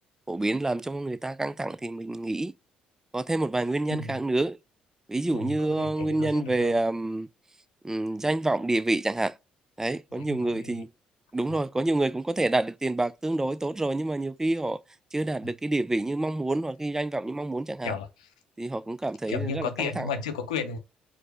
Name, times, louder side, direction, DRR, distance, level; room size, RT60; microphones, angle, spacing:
voice 1, 0.3-2.5 3.1-4.6 5.1-7.3 7.8-9.3 9.8-10.9 11.3-14.8 15.1-17.9 18.6-20.1, right 2 dB, 15° right, 0.3 m, -28 dB
voice 2, 3.9-4.2 5.3-6.8 10.1-10.8 17.8-18.3 19.3-20.8, left 5 dB, 85° left, 0.6 m, -34 dB
4.7 x 2.0 x 3.3 m
hypercardioid pair, 50°, 4 cm